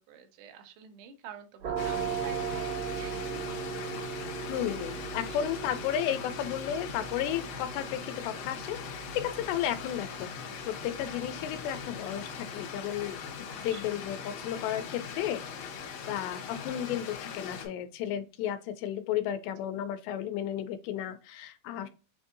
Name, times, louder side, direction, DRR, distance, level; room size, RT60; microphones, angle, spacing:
voice 1, 0.0-3.4 4.8-5.0 5.4-5.6 13.7-13.9 21.8-21.9, right 8 dB, 85° right, 6 dB, 2.7 m, -48 dB
sound 1, 1.6-13.1, right 7 dB, 55° right, 2.6 m, -39 dB
Stream, 1.8-17.7, left 7 dB, 70° left, 2.5 m, -41 dB
voice 2, 4.5-13.2 13.6-15.7 16.1-21.9, left 10 dB, 85° left, 9 dB, 2.8 m, -33 dB
6.7 x 2.7 x 2.5 m, 0.32 s
omnidirectional pair, 4.8 m